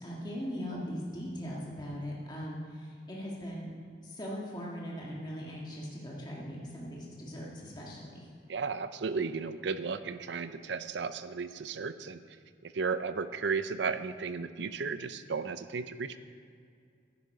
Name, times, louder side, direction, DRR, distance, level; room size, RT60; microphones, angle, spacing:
voice 1, 0.0-3.7 4.0-8.3, equal, 25° left, -4 dB, 1.7 m, -40 dB
voice 2, 8.5-12.2 12.6-16.2, right 5 dB, 70° right, 12 dB, 0.5 m, -34 dB
11.5 x 9.9 x 4.8 m, 2.3 s
head